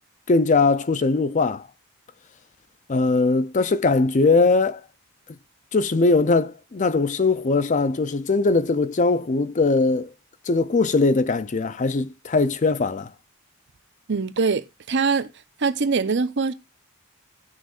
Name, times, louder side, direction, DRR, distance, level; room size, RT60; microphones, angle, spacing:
voice 1, 0.3-1.6 2.9-4.8 5.7-10.1 10.5-13.1, left 3 dB, 35° left, 0.4 m, -20 dB
voice 2, 14.1-15.3 15.6-16.5, right 4 dB, 55° right, 0.7 m, -23 dB
17.5 x 6.4 x 2.4 m
head